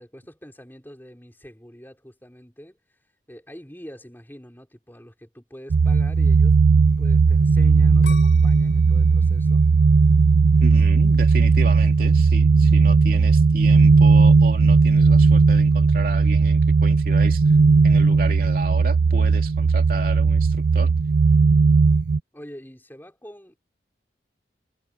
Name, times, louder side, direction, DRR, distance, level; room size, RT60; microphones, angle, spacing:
voice 1, 0.0-2.8 3.3-6.6 7.0-9.6 22.3-23.6, equal, 10° left, 4.3 m, -44 dB
sound 1, 5.7-22.2, right 4 dB, 85° right, 0.5 m, -16 dB
sound 2, 8.0-10.9 11.5-11.9, left 5 dB, 85° left, 3.5 m, -44 dB
voice 2, 10.6-17.6 17.8-20.9, right 2 dB, 50° right, 3.0 m, -33 dB
head